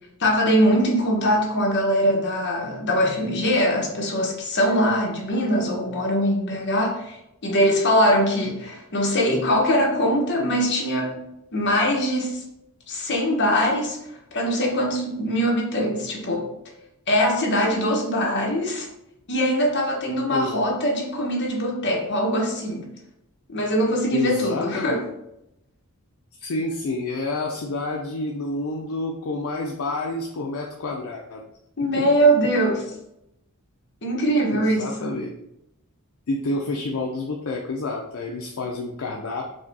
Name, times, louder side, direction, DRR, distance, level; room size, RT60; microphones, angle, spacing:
voice 1, 0.2-7.2 7.4-11.2 11.5-12.4 12.9-14.0 14.3-16.5 17.1-18.9 19.3-22.9 23.5-25.0 31.8-32.8 34.0-35.1, equal, 55° left, -1 dB, 1.1 m, -22 dB
voice 2, 24.1-25.0 26.4-31.4 32.0-32.1 34.5-35.3 36.3-39.5, left 2 dB, 70° left, 0 dB, 0.5 m, -29 dB
5.0 x 2.2 x 4.0 m, 0.83 s
head